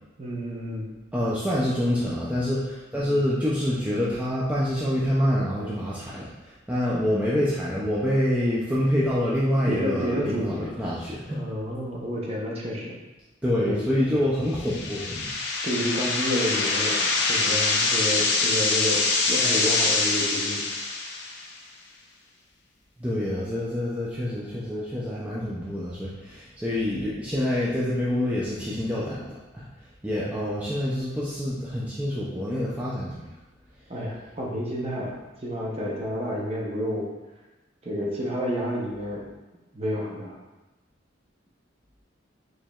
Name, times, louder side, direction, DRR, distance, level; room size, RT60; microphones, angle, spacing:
voice 1, 0.2-0.9 9.6-10.7 11.3-13.0 13.6-13.8 15.6-20.6 30.2-30.3 33.9-37.1 37.8-39.2 39.7-40.4, equal, 30° right, -3 dB, 0.7 m, -30 dB
voice 2, 1.1-11.4 13.4-15.3 23.0-29.7 30.0-33.3, left 1 dB, 10° right, -8 dB, 0.4 m, -26 dB
sound 1, 14.5-21.5, left 3 dB, 60° left, 0.5 m, -24 dB
4.5 x 3.1 x 2.3 m, 1.1 s
head